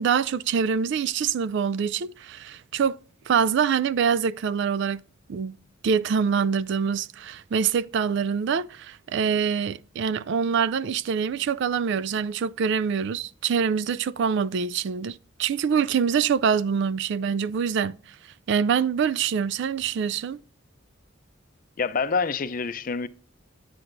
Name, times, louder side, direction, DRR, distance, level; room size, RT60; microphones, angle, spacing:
voice 1, 0.0-3.0 3.3-5.0 5.3-5.6 5.8-18.2 18.5-20.4, right 6 dB, 60° right, 0.3 m, -25 dB
voice 2, 21.8-23.1, left 5 dB, 45° left, 0.5 m, -26 dB
9.9 x 7.7 x 2.6 m
head